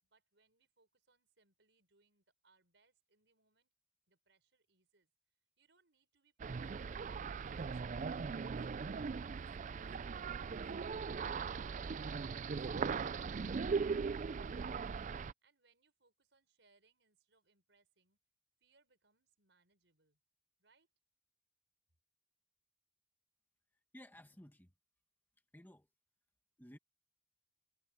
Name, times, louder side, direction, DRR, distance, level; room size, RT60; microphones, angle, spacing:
voice 1, 0.0-3.7 4.1-5.1 5.6-6.9 7.4-8.8 9.3-10.4 15.4-18.2 18.6-20.2 20.6-20.9, right 3 dB, 70° right, 5.7 m, -76 dB
sound 1, 6.4-15.3, right 5 dB, 40° right, 0.4 m, -39 dB
voice 2, 23.9-24.7 25.5-25.9 26.6-26.8, equal, 10° left, 1.5 m, -56 dB
head